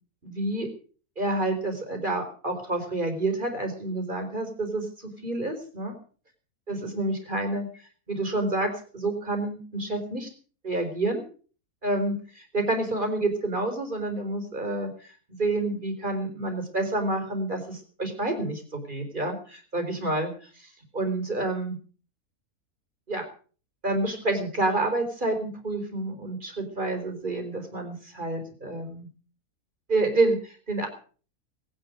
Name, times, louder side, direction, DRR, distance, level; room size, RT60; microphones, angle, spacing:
voice 1, 0.2-0.7 1.2-5.9 6.7-7.7 8.1-10.3 10.6-11.2 11.8-12.1 12.5-14.9 15.4-20.3 20.9-21.8 23.1-23.3 23.8-29.1 29.9-30.9, right 2 dB, 30° right, 5 dB, 4.4 m, -28 dB
20.0 x 10.5 x 6.3 m, 0.42 s
omnidirectional pair, 1.6 m